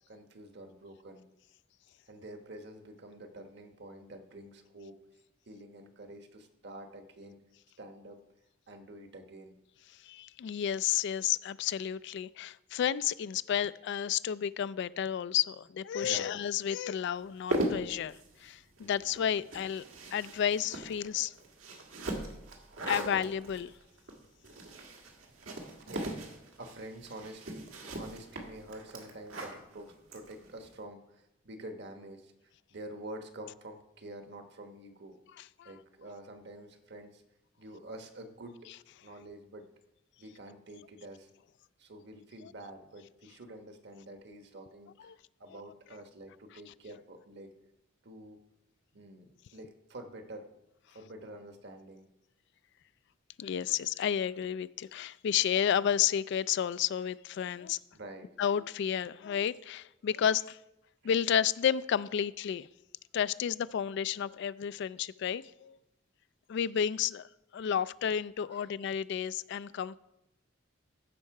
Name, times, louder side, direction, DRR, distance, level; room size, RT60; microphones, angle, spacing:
voice 1, 0.1-1.2 2.1-4.9 5.5-7.4 7.8-8.2 8.7-9.5 16.0-16.3 25.0-25.1 25.9-32.3 32.7-35.2 35.6-37.2 37.6-38.6 39.0-39.7 40.2-41.3 41.8-45.1 45.4-47.5 48.0-48.4 48.9-50.5 50.9-52.1 57.9-58.3 68.5-68.7 69.7-69.8, right 1 dB, 60° right, 1.2 m, -47 dB
voice 2, 10.0-19.8 20.1-21.3 22.9-23.7 35.6-35.7 42.4-42.5 45.0-45.2 45.5-45.6 53.4-57.8 58.4-60.6 61.0-62.7 63.1-65.8 66.5-67.3 67.5-70.0, left 9 dB, 60° left, 0.3 m, -31 dB
sound 1, 17.2-30.7, right 1 dB, 90° right, 1.9 m, -39 dB
15.0 x 5.6 x 4.8 m
head